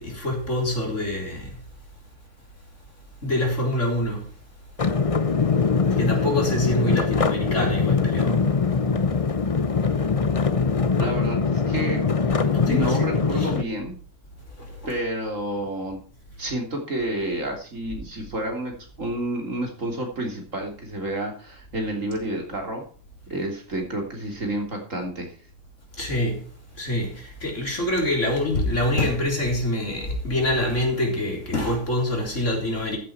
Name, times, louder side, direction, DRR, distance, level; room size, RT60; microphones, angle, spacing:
voice 1, 0.0-1.6 3.2-4.3 5.9-8.5 12.4-13.5 14.6-15.0 26.0-26.5 26.8-33.0, left 1 dB, 50° left, 4.1 m, -26 dB
sound 1, 4.8-13.6, left 5 dB, 35° left, 0.6 m, -22 dB
voice 2, 11.0-12.0 12.6-13.9 14.9-16.0 16.4-22.8 23.3-25.3, right 1 dB, 55° right, 3.7 m, -30 dB
14.0 x 8.6 x 4.4 m
omnidirectional pair, 1.6 m